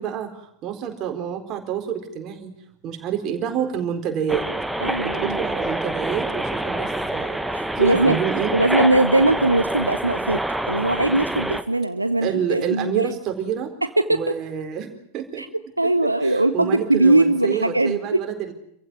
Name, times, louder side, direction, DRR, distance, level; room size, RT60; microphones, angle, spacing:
voice 1, 0.0-2.5 2.8-4.4 5.1-8.5 11.3-11.4 12.2-13.7 14.1-15.4 16.2-18.5, right 8 dB, 35° right, 4 dB, 4.1 m, -28 dB
sound 1, 4.3-11.6, right 1 dB, 5° right, 1.4 m, -26 dB
voice 2, 4.8-5.4 7.5-8.2 8.5-10.4 10.7-13.1 14.0-14.3 15.4-15.5 15.8-18.0, right 2 dB, 85° right, 11 dB, 0.9 m, -20 dB
27.5 x 15.5 x 9.5 m, 0.73 s
figure-of-eight pair, 90°, 0 cm